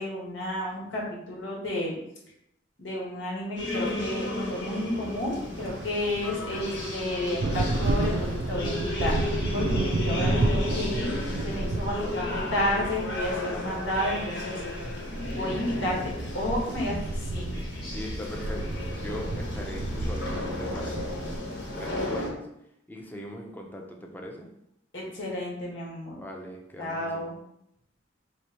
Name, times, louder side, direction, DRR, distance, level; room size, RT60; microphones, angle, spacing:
voice 1, 0.0-2.0 2.8-11.2 11.4-14.6 15.3-16.0 16.3-17.6 24.9-26.2 26.8-27.3, left 1 dB, 85° left, -3 dB, 1.5 m, -31 dB
sound 1, 3.6-22.3, left 1 dB, 65° left, 1.3 m, -34 dB
sound 2, 5.4-21.4, right 2 dB, 70° right, 0.5 m, -32 dB
voice 2, 12.0-12.9 17.9-21.4 21.7-22.4 22.9-24.5 26.2-27.2, equal, 10° left, 1 dB, 0.6 m, -40 dB
3.2 x 3.0 x 4.3 m, 0.78 s
head